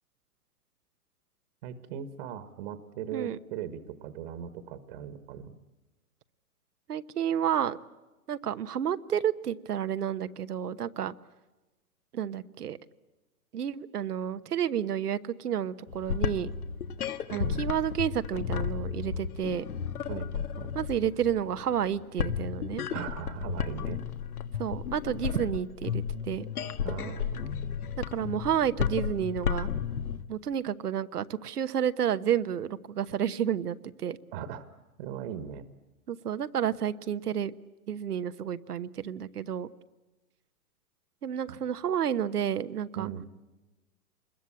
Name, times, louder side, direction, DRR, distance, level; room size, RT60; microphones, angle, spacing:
voice 1, 1.6-5.6 17.3-17.7 20.1-20.7 22.9-24.0 26.8-27.8 34.3-34.7 35.0-35.7 41.5-41.6 42.9-43.2, right 9 dB, 40° right, 12 dB, 1.4 m, -39 dB
voice 2, 6.9-7.8 8.3-11.1 12.1-12.8 13.5-16.5 17.3-19.6 20.7-22.8 24.6-26.5 28.1-29.7 30.3-34.2 36.1-37.5 37.9-39.7 41.2-43.1, right 9 dB, 90° right, 12 dB, 1.2 m, -30 dB
sound 1, 15.9-30.2, left 7 dB, 75° left, 1.6 m, -33 dB
26.0 x 21.5 x 8.6 m, 1.1 s
hypercardioid pair, 145°, 45 cm